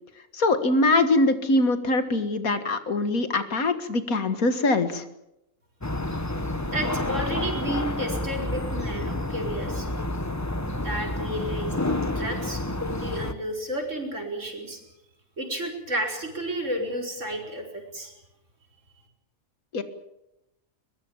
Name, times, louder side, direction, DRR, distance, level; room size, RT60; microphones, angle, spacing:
voice 1, 0.3-5.0 19.7-19.8, left 2 dB, 80° left, 10 dB, 2.3 m, -23 dB
sound 1, 5.8-13.3, left 2 dB, 15° left, 1.1 m, -29 dB
voice 2, 6.7-9.9 10.8-14.8 15.4-18.1, right 1 dB, 60° right, 2 dB, 5.4 m, -32 dB
22.5 x 21.5 x 7.3 m, 0.86 s
omnidirectional pair, 1.5 m